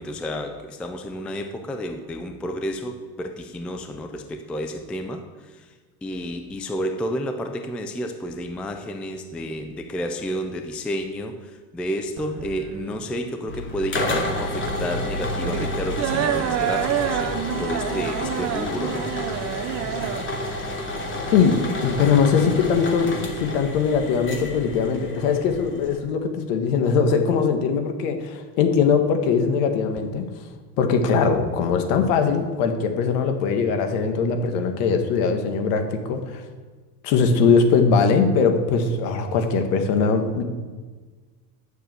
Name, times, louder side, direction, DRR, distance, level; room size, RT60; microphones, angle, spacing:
voice 1, 0.0-19.1, equal, 5° left, 6 dB, 0.3 m, -31 dB
sound 1, 12.2-22.2, right 11 dB, 35° right, 0.7 m, -29 dB
sound 2, 13.5-26.0, left 1 dB, 25° left, 2.3 m, -30 dB
voice 2, 21.3-23.1 23.4-30.3 30.8-36.4 37.0-40.4, left 5 dB, 65° left, 6 dB, 1.7 m, -21 dB
9.7 x 6.7 x 7.6 m, 1.4 s
supercardioid pair, 120°, 49 cm